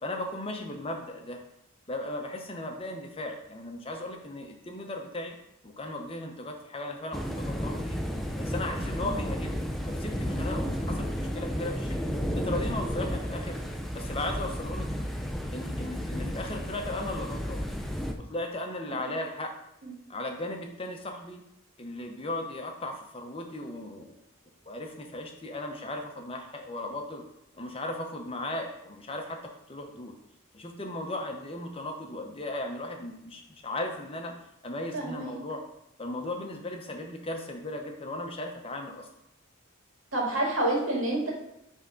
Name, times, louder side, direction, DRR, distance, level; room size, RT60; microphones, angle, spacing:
voice 1, 0.0-1.4 1.9-5.4 5.6-8.0 8.4-12.0 12.3-13.6 13.9-14.9 15.5-17.6 18.2-19.5 20.1-21.4 21.8-24.2 24.6-27.2 27.5-30.1 30.5-34.3 34.6-35.6 36.0-39.1, left 1 dB, 25° left, 3 dB, 0.9 m, -36 dB
sound 1, 7.1-18.1, equal, ahead, 0.5 m, -32 dB
voice 2, 34.9-35.4 40.1-41.3, right 1 dB, 75° right, -2 dB, 2.2 m, -28 dB
10.0 x 3.6 x 3.9 m, 0.83 s
head